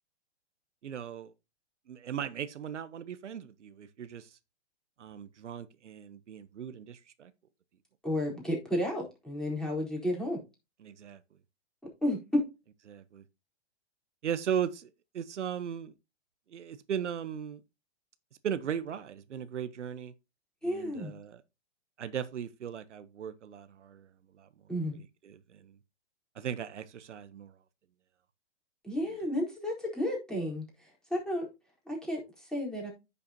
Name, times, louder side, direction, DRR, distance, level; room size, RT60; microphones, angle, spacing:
voice 1, 0.8-1.3 1.9-4.4 5.0-7.3 10.8-11.2 12.9-13.2 14.2-14.9 15.1-15.9 16.5-17.6 18.4-20.1 20.6-21.4 22.0-24.5 25.2-25.8 26.3-27.6, right 8 dB, 80° right, 1.0 m, -37 dB
voice 2, 8.0-10.4 12.0-12.5 20.6-21.2 24.7-25.0 28.8-31.5 31.9-32.9, left 1 dB, ahead, 4.1 m, -32 dB
10.0 x 6.9 x 2.9 m
hypercardioid pair, 130°, 35 cm